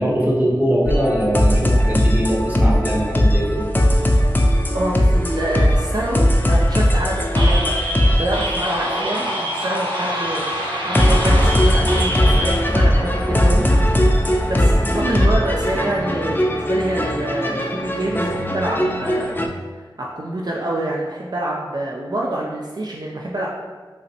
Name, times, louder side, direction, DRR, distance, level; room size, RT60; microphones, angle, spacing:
voice 1, 0.0-3.7 4.2-4.3, equal, 20° right, -4 dB, 0.8 m, -21 dB
sound 1, 0.9-19.5, equal, 25° left, 0.3 m, -19 dB
voice 2, 4.7-7.7 8.1-13.6 13.9-19.4 20.0-23.5, right 1 dB, 55° right, -3 dB, 0.4 m, -26 dB
sound 2, 7.4-12.5, equal, 70° right, 0.9 m, -26 dB
5.1 x 2.0 x 2.7 m, 1.4 s
wide cardioid pair, 50°, 8 cm